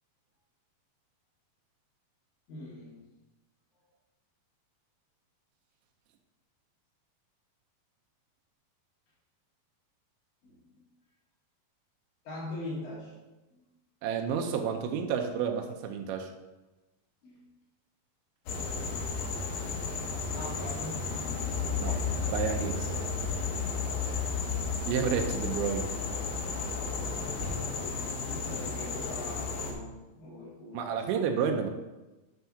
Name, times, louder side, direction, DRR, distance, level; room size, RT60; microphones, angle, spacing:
voice 1, 2.5-3.0 10.4-10.8 12.2-13.1 13.5-13.6 17.2-17.4 20.3-21.1 23.7-24.4 27.1-31.0, left 1 dB, 55° left, -9 dB, 3.3 m, -42 dB
voice 2, 14.0-16.3 21.8-22.9 24.9-25.9 30.7-31.7, right 7 dB, 90° right, 4 dB, 2.5 m, -30 dB
sound 1, 18.5-29.7, left 4 dB, 75° left, 1.5 m, -33 dB
Thump thud, 23.2-23.8 25.1-25.6 27.4-28.1, left 2 dB, 20° right, 1.5 m, -42 dB
9.3 x 3.5 x 5.7 m, 1.1 s
omnidirectional pair, 4.3 m